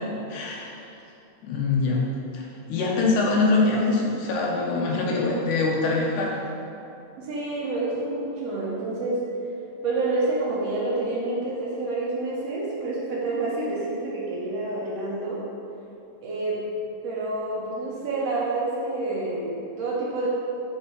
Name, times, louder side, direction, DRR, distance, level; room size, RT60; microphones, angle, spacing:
voice 1, 0.3-0.9 1.4-2.1 2.3-6.4, left 3 dB, 85° left, -2 dB, 2.5 m, -24 dB
voice 2, 7.2-9.2 9.8-15.4 16.2-16.6 17.0-20.3, right 2 dB, 65° right, -5 dB, 1.7 m, -28 dB
6.3 x 4.2 x 5.4 m, 2.7 s
omnidirectional pair, 3.5 m